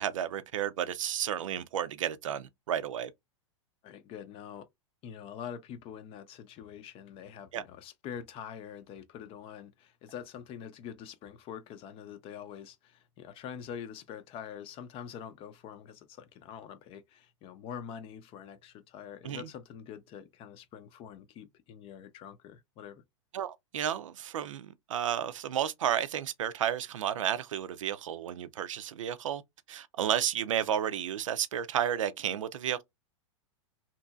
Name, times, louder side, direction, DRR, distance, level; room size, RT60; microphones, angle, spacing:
voice 1, 0.0-3.1 7.5-7.6 19.2-19.5 23.3-29.4 29.7-32.8, right 10 dB, 80° right, 0.5 m, -32 dB
voice 2, 3.8-4.7 5.0-23.0, left 8 dB, 35° left, 0.6 m, -45 dB
2.8 x 2.6 x 2.3 m
hypercardioid pair, 120°, 16 cm